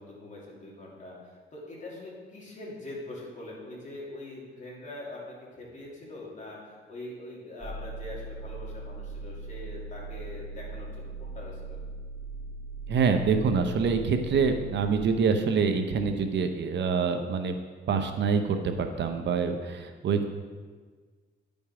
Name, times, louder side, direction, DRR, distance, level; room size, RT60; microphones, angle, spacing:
voice 1, 0.0-11.8, left 2 dB, 40° left, -4 dB, 3.0 m, -43 dB
sound 1, 7.6-14.9, right 3 dB, 30° right, 1.2 m, -39 dB
voice 2, 12.9-17.5 17.9-20.3, right 5 dB, 65° right, 7 dB, 0.8 m, -26 dB
10.5 x 5.4 x 4.9 m, 1.5 s
cardioid pair, 90°, 20 cm